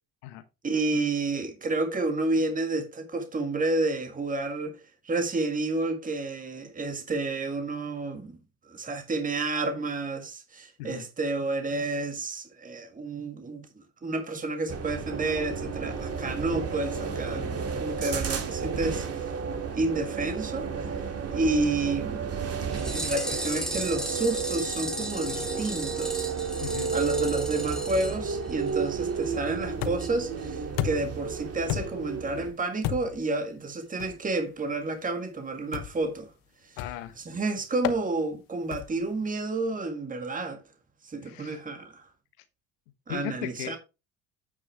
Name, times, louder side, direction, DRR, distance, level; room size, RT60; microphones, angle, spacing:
voice 1, 0.6-8.4 8.7-19.1 19.7-21.0 21.3-22.3 22.9-26.3 26.9-36.3 36.6-36.7 37.2-40.6 41.0-42.1 43.1-43.8, right 2 dB, 20° right, 1.8 m, -30 dB
sound 1, 14.7-32.5, right 5 dB, 35° right, 2.2 m, -32 dB
sound 2, 22.7-28.9 29.2-29.3 29.5-29.6 30.0-30.1 30.4-30.5, equal, ahead, 2.0 m, -36 dB
voice 2, 26.6-26.9 36.8-37.1 41.2-41.6 43.1-43.8, left 12 dB, 75° left, 1.2 m, -37 dB
sound 3, 29.8-30.2 30.8-31.2 31.7-32.1 32.8-33.3 34.0-34.2 35.7-36.1 36.8-37.1 37.8-38.0 38.7-39.1, left 13 dB, 55° left, 1.0 m, -32 dB
9.2 x 6.0 x 3.3 m
hypercardioid pair, 70°, 39 cm